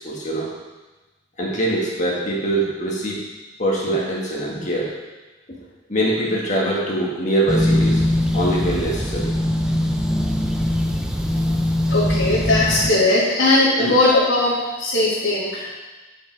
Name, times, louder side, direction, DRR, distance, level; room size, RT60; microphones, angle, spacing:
voice 1, 0.0-0.5 1.4-3.2 3.6-4.9 5.5-5.6 5.9-8.0 8.3-9.3 11.4-11.5 13.8-13.9, right 1 dB, 35° left, -4 dB, 1.7 m, -23 dB
sound 1, 7.5-12.9, left 1 dB, 5° right, 0.5 m, -21 dB
voice 2, 11.9-15.7, left 2 dB, 75° left, -13 dB, 2.8 m, -19 dB
9.6 x 6.1 x 4.6 m, 1.2 s
head